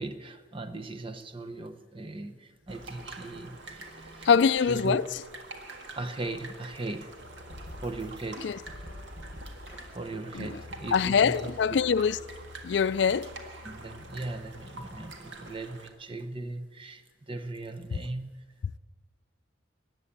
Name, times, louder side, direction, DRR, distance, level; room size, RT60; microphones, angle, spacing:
voice 1, 0.0-4.3 4.7-5.0 5.9-7.1 7.8-8.5 9.9-11.8 13.1-13.2 13.6-18.3, right 2 dB, 30° right, 0.9 m, -38 dB
sound 1, 2.7-15.9, right 2 dB, 75° right, 1.7 m, -46 dB
voice 2, 4.2-5.1 8.4-8.6 10.3-10.5 10.9-12.2 12.6-13.3, left 6 dB, 70° left, 0.4 m, -23 dB
sound 2, 7.2-15.1, left 2 dB, 55° right, 4.8 m, -48 dB
14.0 x 9.9 x 8.6 m
head